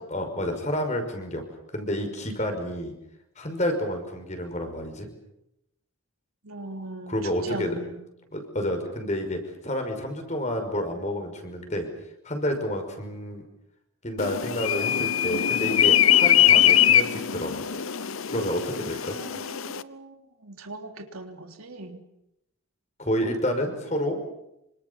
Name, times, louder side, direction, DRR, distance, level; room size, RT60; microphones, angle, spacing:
voice 1, 0.1-1.4 1.7-2.9 3.4-5.1 7.1-7.7 8.3-11.9 12.2-13.4 14.0-17.6 18.3-19.2 23.0-24.2, equal, 35° left, 5 dB, 5.7 m, -29 dB
voice 2, 6.4-8.0 18.7-22.0, right 2 dB, 90° right, 5 dB, 3.5 m, -39 dB
sound 1, 14.2-19.8, left 10 dB, 80° left, 0.9 m, -22 dB
27.5 x 25.5 x 7.2 m, 0.85 s
head